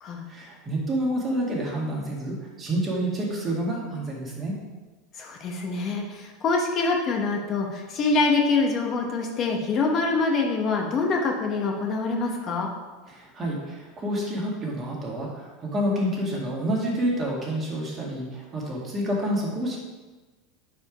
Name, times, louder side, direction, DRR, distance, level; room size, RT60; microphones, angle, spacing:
voice 1, 0.3-4.5 13.1-19.8, right 1 dB, 30° right, -3 dB, 1.8 m, -28 dB
voice 2, 5.2-12.7, left 3 dB, 40° left, 1 dB, 0.9 m, -25 dB
4.6 x 4.3 x 4.9 m, 1.2 s
supercardioid pair, 110°, 0 cm